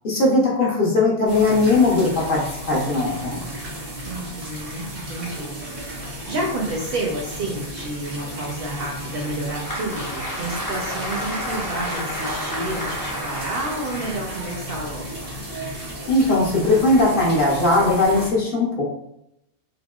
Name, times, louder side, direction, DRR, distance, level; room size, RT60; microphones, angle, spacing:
voice 1, 0.0-2.4 2.7-3.4 16.1-18.8, left 2 dB, 50° left, -4 dB, 0.8 m, -19 dB
sound 1, 1.3-18.3, equal, 90° right, 1.4 m, -34 dB
voice 2, 4.0-15.1, right 1 dB, 60° right, -2 dB, 0.7 m, -30 dB
Applause, 9.2-15.5, equal, 25° left, 0.4 m, -31 dB
3.5 x 2.1 x 2.3 m, 0.80 s
omnidirectional pair, 1.3 m